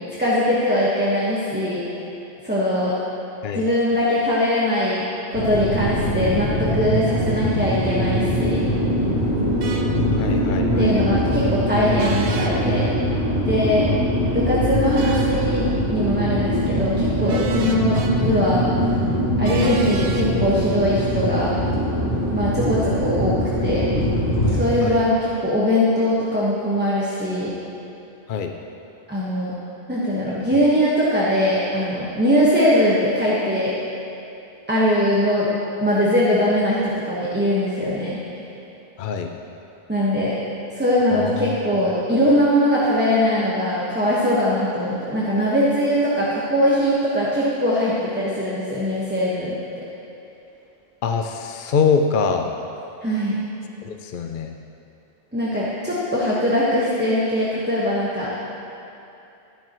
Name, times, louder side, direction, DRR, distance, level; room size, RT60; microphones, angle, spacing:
voice 1, 0.2-1.8 2.4-2.9 3.5-5.0 5.3-8.6 10.7-12.8 13.5-13.9 14.3-18.7 19.4-21.5 22.3-23.8 24.5-27.5 29.1-29.5 29.9-33.7 34.7-35.5 35.8-38.2 39.9-40.4 40.7-49.8 53.0-53.4 55.3-58.3, equal, 10° right, -8 dB, 1.3 m, -21 dB
sound 1, 5.3-24.6, equal, 75° left, 3.3 m, -22 dB
sound 2, 9.6-9.9 12.0-12.5 14.9-15.3 17.3-18.1 19.4-20.3, right 4 dB, 85° right, 1.1 m, -32 dB
voice 2, 10.1-11.2 24.8-25.0 28.3-28.5 39.0-39.3 41.1-41.5 51.0-52.5 53.8-54.5, left 5 dB, 60° left, 5 dB, 0.7 m, -24 dB
12.5 x 12.0 x 3.1 m, 2.8 s
omnidirectional pair, 1.1 m